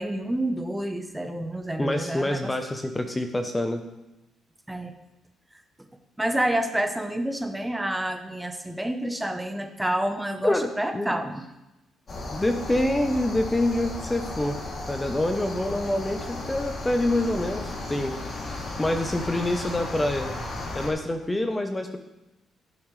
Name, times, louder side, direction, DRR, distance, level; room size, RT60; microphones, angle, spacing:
voice 1, 0.0-2.5 4.7-4.9 6.2-11.4, right 1 dB, 10° right, 7 dB, 1.0 m, -28 dB
voice 2, 1.8-3.8 10.4-11.1 12.3-14.6 14.9-18.1 18.5-20.3 20.7-22.0, left 1 dB, 15° left, 6 dB, 0.8 m, -26 dB
sound 1, 12.1-20.9, left 2 dB, 45° left, 2.8 m, -35 dB
16.0 x 7.3 x 3.3 m, 0.95 s
cardioid pair, 90°, 0 cm